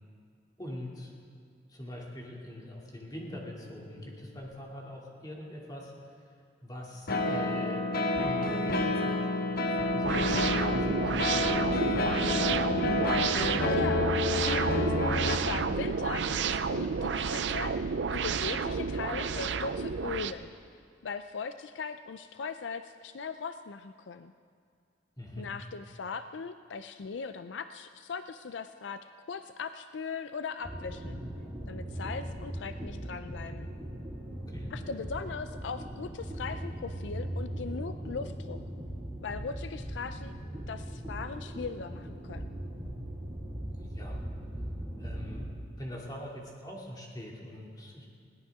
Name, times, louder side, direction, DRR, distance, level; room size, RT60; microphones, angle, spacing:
voice 1, 0.6-1.2 1.7-6.1 6.6-7.9 8.2-9.3 9.7-12.5 25.2-25.5 34.3-34.7 43.7-44.2 45.0-48.1, left 1 dB, 20° left, -2 dB, 2.6 m, -43 dB
sound 1, 3.3-4.4 7.1-15.4, left 2 dB, 55° left, 1.1 m, -29 dB
sound 2, 10.0-20.3, right 5 dB, 70° right, 0.5 m, -30 dB
voice 2, 13.7-14.2 14.5-14.9 15.3-17.8 18.1-20.5 21.0-24.3 25.4-29.0 29.3-31.2 31.7-33.7 34.7-38.6 39.2-40.3 40.7-42.5, left 5 dB, 75° left, 10 dB, 0.5 m, -39 dB
sound 3, 30.6-45.5, right 1 dB, 10° right, 4.9 m, -39 dB
20.5 x 17.5 x 3.6 m, 2.3 s
head